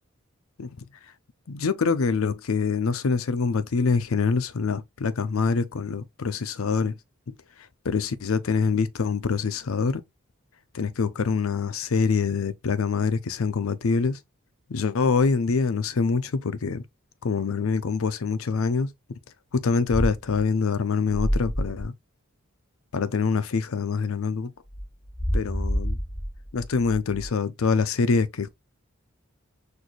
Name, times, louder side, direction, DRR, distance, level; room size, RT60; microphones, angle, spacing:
voice 1, 1.5-7.0 7.8-10.0 10.7-14.2 14.7-16.8 17.2-19.2 19.5-21.9 22.9-24.5 25.3-26.0 26.5-28.5, left 5 dB, 85° left, 0.6 m, -25 dB
sound 1, 19.9-20.4 21.1-21.8 24.7-27.3, equal, 10° left, 0.9 m, -28 dB
6.3 x 2.7 x 3.0 m
head